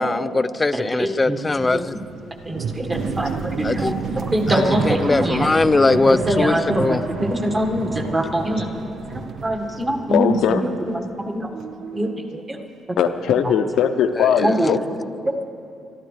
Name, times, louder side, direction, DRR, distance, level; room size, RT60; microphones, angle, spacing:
voice 1, 0.0-2.0 3.6-3.9 4.5-7.0 14.2-14.7, left 3 dB, 25° left, 0.4 m, -21 dB
voice 2, 0.7-1.8 2.4-3.9 4.3-5.5 6.1-10.6 11.3-11.5 11.9-12.6 12.9-13.0 13.4-13.5 14.4-14.7, right 1 dB, 25° right, 1.7 m, -24 dB
sound 1, 1.1-11.2 11.5-12.3, right 4 dB, 65° right, 0.6 m, -30 dB
voice 3, 10.1-10.6 13.0-14.8, left 8 dB, 80° left, 0.7 m, -19 dB
22.5 x 13.5 x 3.3 m
cardioid pair, 90°, 0 cm